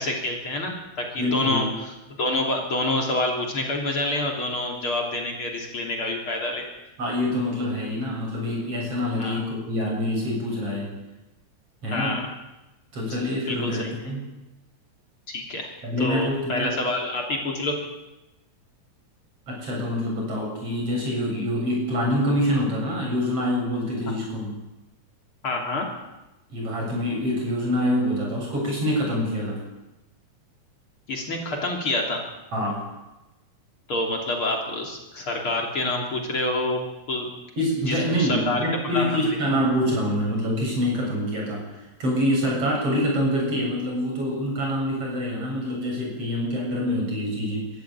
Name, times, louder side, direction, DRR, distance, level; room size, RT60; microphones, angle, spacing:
voice 1, 0.0-1.6 2.1-6.6 9.2-9.4 11.9-12.2 13.5-13.9 15.3-15.7 16.0-17.8 25.4-25.9 31.1-32.2 33.9-36.8 37.1-37.3 37.9-39.4, left 2 dB, 45° left, 1 dB, 3.9 m, -27 dB
voice 2, 1.2-1.7 7.0-11.0 11.8-12.2 12.9-14.2 15.8-16.8 19.5-24.5 26.5-29.6 32.5-32.9 37.6-41.7 42.0-47.7, equal, 55° right, -1 dB, 8.6 m, -26 dB
24.0 x 13.5 x 9.5 m, 1.0 s
omnidirectional pair, 3.3 m